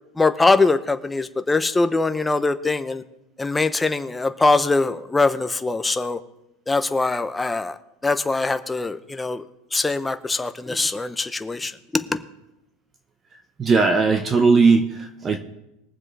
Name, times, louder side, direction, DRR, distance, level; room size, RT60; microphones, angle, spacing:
voice 1, 0.2-3.0 3.4-6.2 6.7-7.8 8.0-9.4 9.7-12.2, left 3 dB, 10° left, 10 dB, 0.7 m, -22 dB
voice 2, 13.6-15.4, right 4 dB, 20° right, 6 dB, 0.9 m, -18 dB
21.5 x 7.4 x 3.3 m, 0.88 s
supercardioid pair, 140°, 0 cm